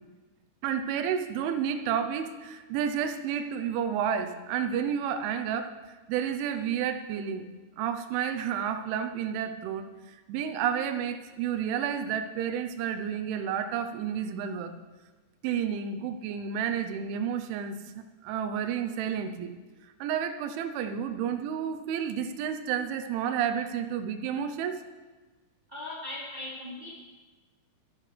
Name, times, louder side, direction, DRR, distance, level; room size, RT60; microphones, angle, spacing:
voice 1, 0.6-5.8 6.1-7.4 7.8-14.7 15.4-17.8 18.2-19.5 20.0-24.8, right 8 dB, 85° right, 8 dB, 3.3 m, -31 dB
voice 2, 25.7-27.0, left 2 dB, 10° right, -9 dB, 3.6 m, -39 dB
24.0 x 11.0 x 3.4 m, 1.3 s
omnidirectional pair, 5.3 m